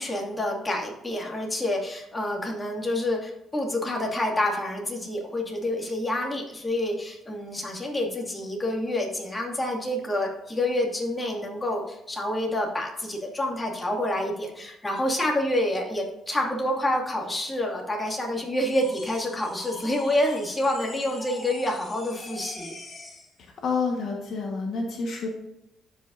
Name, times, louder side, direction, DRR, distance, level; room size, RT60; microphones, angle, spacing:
voice 1, 0.0-22.7, left 1 dB, 20° left, -1 dB, 2.4 m, -28 dB
sound 1, 18.6-23.3, left 2 dB, 35° left, 1.8 m, -43 dB
voice 2, 23.6-25.3, left 4 dB, 65° left, 1 dB, 1.5 m, -28 dB
13.0 x 5.6 x 2.7 m, 0.87 s
cardioid pair, 90°, 0 cm